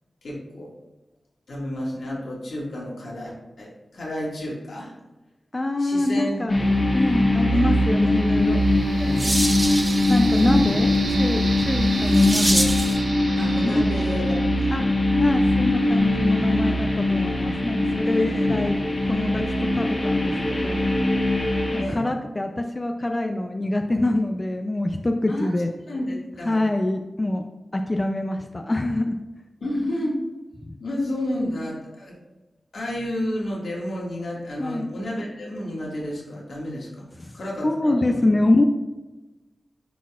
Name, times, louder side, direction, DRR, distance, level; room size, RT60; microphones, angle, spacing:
voice 1, 0.2-0.7 1.5-5.0 5.8-7.1 7.4-7.7 8.9-9.5 10.4-10.7 13.3-14.7 18.0-18.7 21.8-22.1 25.3-25.6 25.9-26.6 29.6-30.2 30.8-32.2 32.7-37.1 37.3-38.3, left 1 dB, 80° left, -4 dB, 1.9 m, -31 dB
voice 2, 5.5-6.6 6.9-8.6 10.1-10.9 11.2-12.7 13.6-14.1 14.7-14.9 15.2-18.8 19.1-20.9 21.7-25.7 26.5-27.4 27.7-29.2 34.6-34.9 37.6-38.6, left 2 dB, 25° left, 5 dB, 0.4 m, -25 dB
sound 1, 6.5-21.8, left 1 dB, 45° left, 1.3 m, -21 dB
sound 2, 7.9-14.8, right 3 dB, 70° right, 0.6 m, -36 dB
sound 3, 8.6-13.1, right 1 dB, 20° right, 0.7 m, -28 dB
10.0 x 4.1 x 2.4 m, 1.1 s
wide cardioid pair, 85°, 0 cm